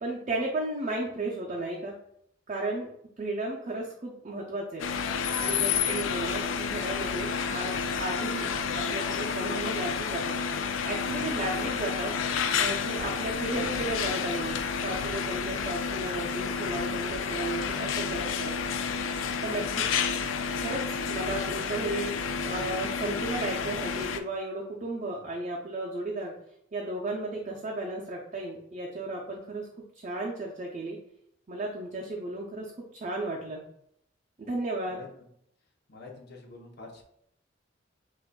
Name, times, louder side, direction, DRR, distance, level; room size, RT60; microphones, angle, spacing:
voice 1, 0.0-2.0 2.5-2.9 3.2-4.9 5.4-8.5 8.7-10.4 10.9-12.1 12.6-14.5 14.8-18.5 19.4-19.8 20.6-22.1 22.4-26.3 26.7-29.7 29.9-31.0 31.5-33.6 34.4-35.0, right 2 dB, 40° right, -2 dB, 0.5 m, -34 dB
sound 1, 4.8-24.2, left 6 dB, 90° left, 0.4 m, -30 dB
voice 2, 19.2-19.7 34.9-35.3 35.9-37.0, left 3 dB, 55° left, 1 dB, 0.8 m, -47 dB
5.9 x 2.5 x 2.2 m, 0.73 s
head